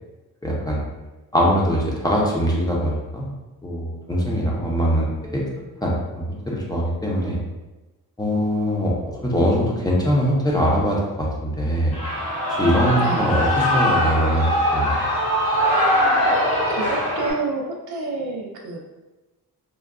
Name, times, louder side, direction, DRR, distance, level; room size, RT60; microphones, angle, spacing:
voice 1, 0.4-0.8 1.3-3.3 3.6-5.4 5.8-7.4 8.2-8.9 9.2-11.9 12.5-14.5 14.7-15.0, equal, 10° left, -4 dB, 0.6 m, -22 dB
Shout / Cheering, 11.9-17.3, equal, 70° left, 1.3 m, -21 dB
voice 2, 13.0-13.4 16.7-18.8, right 3 dB, 85° right, 0 dB, 0.6 m, -29 dB
3.7 x 2.2 x 2.3 m, 1.1 s
cardioid pair, 100°, 36 cm